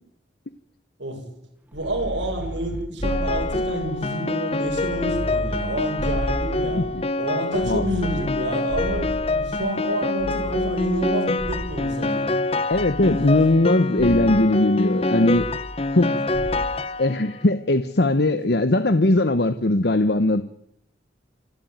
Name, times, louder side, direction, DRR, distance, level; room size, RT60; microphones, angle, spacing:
sound 1, 1.7-4.2 4.6-7.1 7.5-9.7 10.2-12.1 12.7-13.7 14.0-14.5 15.3-16.1 16.3-16.8, equal, 10° right, 0.9 m, -33 dB
voice 1, 1.7-12.3 13.1-13.2 15.9-16.1 18.5-18.6, right 1 dB, 85° right, 2 dB, 7.2 m, -29 dB
Piano, 3.0-17.4, left 2 dB, 30° left, 0.8 m, -26 dB
voice 2, 6.7-7.1 7.7-7.9 12.7-15.5 15.9-16.2 17.0-20.5, left 2 dB, 60° left, 12 dB, 1.0 m, -20 dB
27.5 x 13.0 x 9.4 m, 0.73 s
head